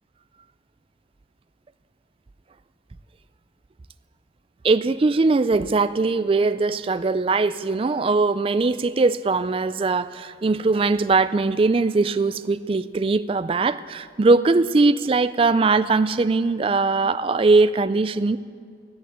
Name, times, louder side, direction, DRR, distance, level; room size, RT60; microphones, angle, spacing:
voice 1, 4.6-18.4, right 3 dB, 30° right, 12 dB, 0.3 m, -20 dB
14.0 x 11.0 x 7.5 m, 2.4 s
head